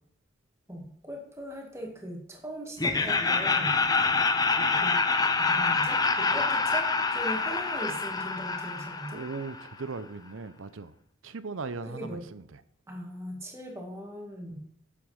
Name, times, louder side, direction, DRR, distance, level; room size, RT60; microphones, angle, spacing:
voice 1, 0.7-3.8 4.8-5.0 5.4-9.2 11.9-12.2 12.9-14.6, equal, 15° right, 1.9 m, -39 dB
Laughter, 2.8-9.7, left 4 dB, 20° left, 0.6 m, -26 dB
voice 2, 9.1-10.9 11.2-12.6, right 4 dB, 85° right, 0.7 m, -38 dB
8.4 x 7.8 x 5.5 m
head